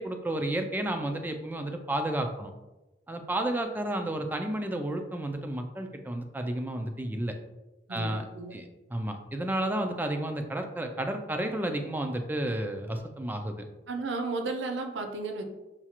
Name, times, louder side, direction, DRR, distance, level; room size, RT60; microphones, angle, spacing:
voice 1, 0.0-2.5 3.1-7.4 7.9-8.2 8.5-13.6, right 1 dB, 10° right, 5 dB, 0.3 m, -32 dB
voice 2, 7.9-8.6 13.9-15.5, right 3 dB, 75° right, 4 dB, 0.6 m, -33 dB
5.8 x 2.4 x 2.9 m, 1.0 s
head